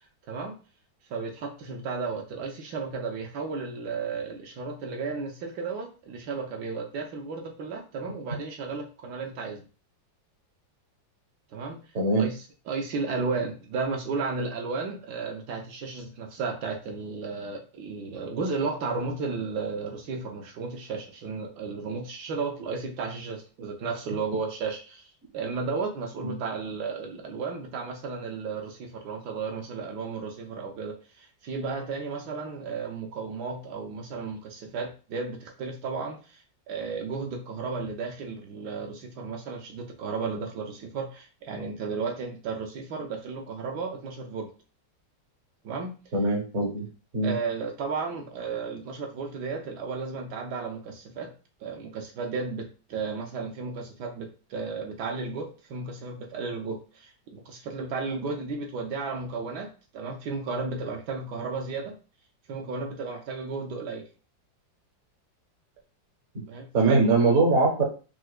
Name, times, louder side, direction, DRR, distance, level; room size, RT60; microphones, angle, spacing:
voice 1, 1.1-9.6 11.5-11.8 12.2-44.5 45.6-46.0 47.2-51.3 51.6-62.0 62.5-64.1 66.5-67.2, right 4 dB, 70° right, 3 dB, 1.1 m, -34 dB
voice 2, 11.9-12.3 26.2-26.3 46.1-46.9 47.1-47.3 66.7-67.8, right 3 dB, 55° right, 2 dB, 0.9 m, -22 dB
4.6 x 2.1 x 2.2 m, 0.35 s
omnidirectional pair, 2.0 m